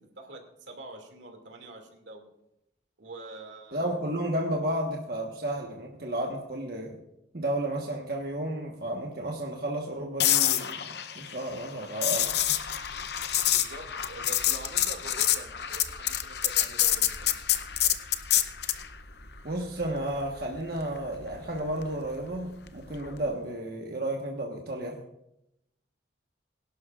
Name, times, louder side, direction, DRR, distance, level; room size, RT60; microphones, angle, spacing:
voice 1, 0.0-2.3 3.0-3.9 13.5-17.3, right 2 dB, 85° right, 3 dB, 2.4 m, -45 dB
voice 2, 3.7-7.0 7.3-12.3 19.4-25.0, right 1 dB, 55° right, 0 dB, 1.3 m, -32 dB
sound 1, 10.2-18.9 23.0-23.3, left 12 dB, 65° left, 0.7 m, -27 dB
sound 2, 12.2-23.3, equal, 80° left, 2.4 m, -50 dB
22.5 x 11.5 x 2.5 m, 0.83 s
head